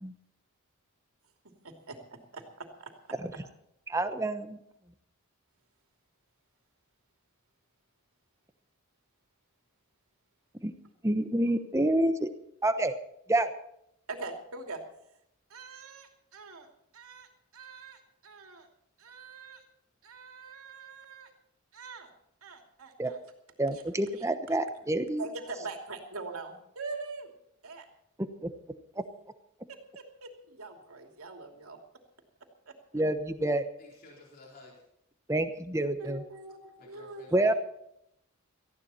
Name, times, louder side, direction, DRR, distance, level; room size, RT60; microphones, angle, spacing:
voice 1, 1.4-2.9 14.1-14.8 15.5-16.7 16.9-18.7 19.0-19.6 20.0-21.3 21.7-22.1 22.4-23.2 23.7-23.8 24.2-24.6 25.2-27.3 27.6-27.9 29.7-31.8 32.7-33.0 36.0-37.5, right 3 dB, 75° right, 4 dB, 2.8 m, -43 dB
voice 2, 3.9-4.6 10.6-10.7 11.0-12.3 12.6-12.9 13.3-13.5 23.0-23.1 23.6-25.3 28.4-28.5 32.9-33.7 35.3-36.2 37.3-37.5, right 1 dB, 15° right, 9 dB, 1.0 m, -28 dB
voice 3, 33.8-34.8 36.8-37.5, left 2 dB, 40° left, -3 dB, 3.8 m, -53 dB
18.5 x 15.0 x 4.3 m, 0.76 s
head